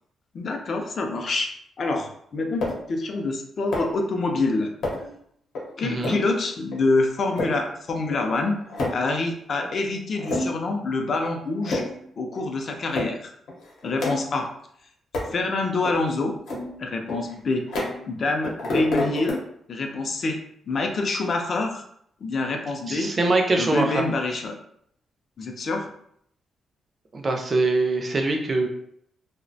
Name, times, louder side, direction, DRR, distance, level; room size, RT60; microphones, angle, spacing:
voice 1, 0.3-1.5 1.8-4.7 5.8-8.6 8.9-11.9 12.2-13.3 13.8-14.5 15.3-16.4 16.8-17.6 18.1-19.4 19.7-20.4 20.7-21.8 22.2-23.1 23.6-24.6 25.4-25.9, left 3 dB, 45° left, 3 dB, 0.4 m, -26 dB
sound 1, 2.6-2.9 3.7-4.1 4.8-5.2 5.5-5.6 6.0-6.3 6.7-6.8 7.2-7.5 8.1-8.2 8.4-9.1 9.6-9.7 10.2-10.7 11.1-11.3 11.6-12.0 12.4-12.5 12.9-13.1 13.5-14.5 15.1-15.4 15.8-15.9 16.5-18.2 18.4-19.3, left 2 dB, 80° left, 0.7 m, -29 dB
voice 2, 5.8-6.2 22.9-24.0 27.1-28.7, right 2 dB, 30° right, 3 dB, 0.4 m, -23 dB
2.4 x 2.0 x 2.6 m, 0.68 s
cardioid pair, 140°, 0 cm